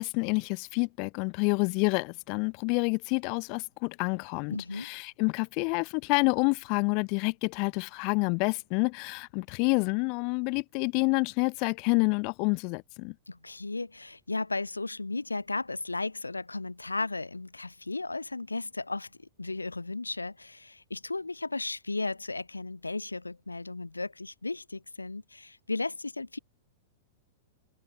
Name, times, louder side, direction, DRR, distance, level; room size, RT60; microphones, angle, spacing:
voice 1, 0.0-13.1, left 36 dB, 45° left, 2.2 m, -28 dB
voice 2, 4.5-4.9 13.3-26.4, left 3 dB, 85° left, 4.1 m, -35 dB
figure-of-eight pair, 95°, 0 cm